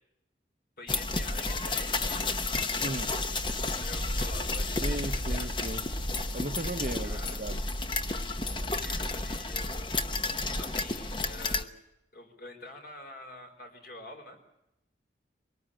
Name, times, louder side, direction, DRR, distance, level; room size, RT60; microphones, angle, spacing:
voice 1, 0.8-2.2 3.3-5.5 7.0-7.4 8.7-10.0 10.6-11.7 12.1-14.6, left 2 dB, 55° left, 5 dB, 4.7 m, -47 dB
sound 1, 0.9-11.6, left 2 dB, 25° left, 1.0 m, -31 dB
voice 2, 4.8-5.8 6.3-7.6, right 1 dB, 45° right, 10 dB, 0.8 m, -36 dB
23.0 x 19.0 x 9.0 m, 0.86 s
head